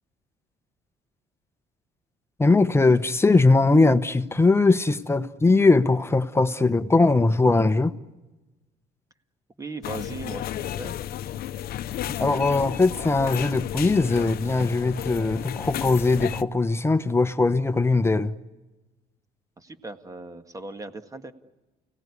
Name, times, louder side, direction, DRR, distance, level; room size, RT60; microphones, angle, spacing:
voice 1, 2.4-8.0 12.2-18.3, left 3 dB, 15° left, 1.1 m, -20 dB
voice 2, 9.6-10.9 19.6-21.3, right 3 dB, 20° right, 1.8 m, -38 dB
sound 1, 9.8-16.4, left 12 dB, 65° left, 0.8 m, -33 dB
29.5 x 18.0 x 9.8 m
cardioid pair, 110°, 17 cm